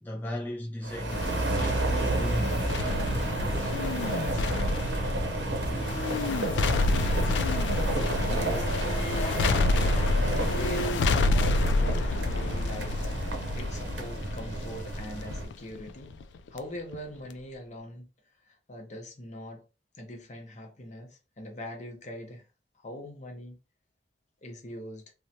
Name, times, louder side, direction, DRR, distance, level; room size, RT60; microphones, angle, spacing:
voice 1, 0.0-1.2 1.5-2.6 3.4-3.9, left 1 dB, 10° left, 0.3 m, -37 dB
sound 1, 0.8-15.5, right 2 dB, 85° right, 0.7 m, -31 dB
sound 2, 1.1-16.6 16.9-17.0, left 2 dB, 85° left, 0.3 m, -28 dB
voice 2, 8.3-16.2 16.5-18.1 18.5-19.6 19.9-22.4 22.8-23.6 24.4-25.1, left 1 dB, 40° left, 0.7 m, -42 dB
3.0 x 2.1 x 2.7 m
head